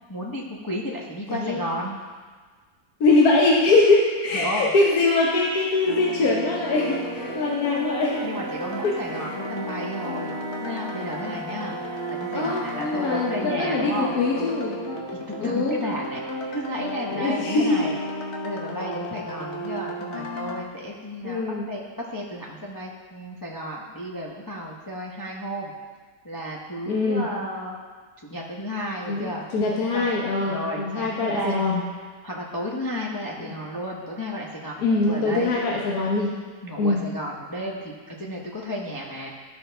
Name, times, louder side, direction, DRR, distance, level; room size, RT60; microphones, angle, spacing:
voice 1, 0.1-2.0 4.3-4.7 7.6-7.9 8.2-11.8 12.2-14.1 15.4-16.2 16.5-18.0 18.4-25.7 26.2-27.8 28.2-29.5 29.9-30.1 30.4-31.6 32.2-35.5 36.6-39.3, equal, 30° left, -3 dB, 0.4 m, -33 dB
voice 2, 1.3-1.6 3.0-8.1 8.8-9.3 12.3-14.8 15.4-15.8 17.1-17.8 21.2-21.6 26.9-27.3 29.1-31.8 33.4-33.5 34.8-36.3 36.8-37.0, left 3 dB, 65° left, -3 dB, 1.3 m, -22 dB
sound 1, 5.9-20.6, equal, 50° left, 1.0 m, -33 dB
Wind instrument woodwind instrument, 6.4-13.6, right 5 dB, 65° right, 1.0 m, -39 dB
14.0 x 5.2 x 3.4 m, 1.5 s
omnidirectional pair, 1.8 m